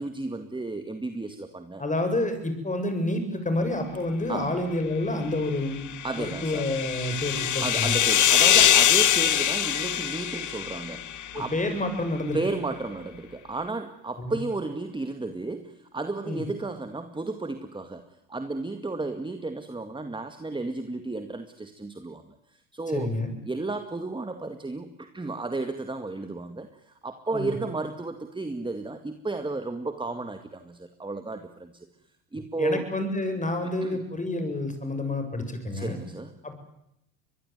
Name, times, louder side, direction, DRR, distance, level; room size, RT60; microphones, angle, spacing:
voice 1, 0.0-1.8 4.3-4.5 6.0-6.7 7.6-11.5 12.3-18.0 18.3-23.1 23.4-31.9 32.3-32.9 33.8-34.0 35.7-36.3, right 3 dB, 10° right, 8 dB, 2.1 m, -33 dB
voice 2, 1.8-5.8 6.2-8.0 11.3-12.4 14.2-14.4 16.2-16.4 22.9-23.3 27.3-27.5 32.6-36.0 36.4-36.5, left 2 dB, 15° left, 8 dB, 7.5 m, -29 dB
sound 1, 5.8-11.4, left 10 dB, 35° left, 1.6 m, -23 dB
24.0 x 21.5 x 9.5 m, 0.79 s
hypercardioid pair, 90°, 50 cm